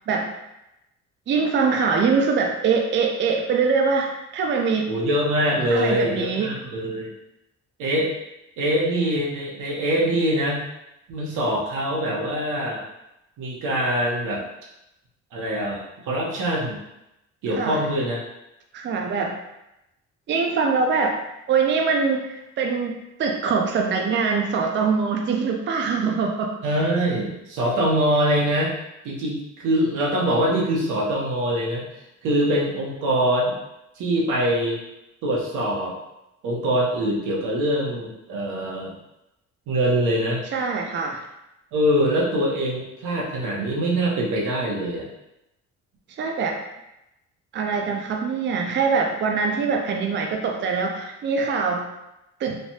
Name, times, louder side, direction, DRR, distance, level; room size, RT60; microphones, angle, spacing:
voice 1, 1.3-4.9 5.7-6.5 17.5-17.9 18.7-19.3 20.3-21.2 21.5-22.9 23.2-26.6 40.5-41.2 46.2-46.6 47.5-51.9 52.4-52.6, right 5 dB, 40° right, 2 dB, 0.4 m, -23 dB
voice 2, 4.9-7.1 7.8-8.1 8.6-10.6 11.1-12.8 13.4-14.4 15.3-16.8 17.4-18.2 26.6-28.7 29.0-31.8 32.2-33.6 34.0-34.8 35.2-35.9 36.4-39.0 39.7-40.4 41.7-45.1, equal, 90° right, -3 dB, 0.9 m, -23 dB
3.2 x 2.2 x 2.7 m, 0.89 s
cardioid pair, 90°, 30 cm